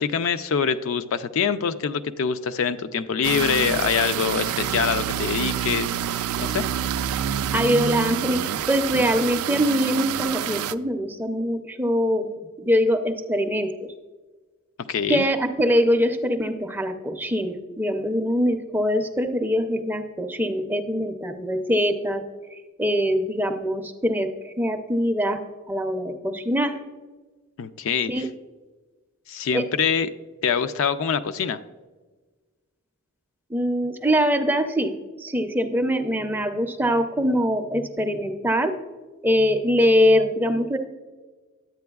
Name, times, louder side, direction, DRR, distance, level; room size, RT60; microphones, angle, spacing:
voice 1, 0.0-5.9 6.4-6.6 14.9-15.3 27.6-28.3 29.3-30.1 30.4-31.6, left 6 dB, 65° left, 11 dB, 0.4 m, -24 dB
sound 1, 3.2-10.7, right 9 dB, 80° right, 0.3 m, -27 dB
voice 2, 7.5-12.3 12.6-13.7 15.1-22.2 22.5-25.4 25.7-26.8 28.1-28.3 29.5-29.6 33.5-34.9 35.2-38.7 39.2-40.8, equal, 10° right, 6 dB, 0.4 m, -23 dB
10.5 x 8.5 x 2.3 m, 1.3 s
head